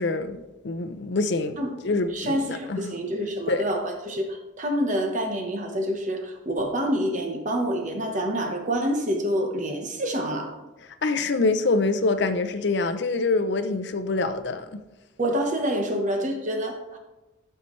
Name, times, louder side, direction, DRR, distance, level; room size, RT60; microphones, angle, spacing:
voice 1, 0.0-1.6 1.8-2.9 3.5-3.6 11.0-14.8, left 3 dB, 55° left, 0.6 m, -25 dB
voice 2, 2.1-10.5 15.2-17.0, equal, 40° right, 1.1 m, -27 dB
12.5 x 5.6 x 3.2 m
head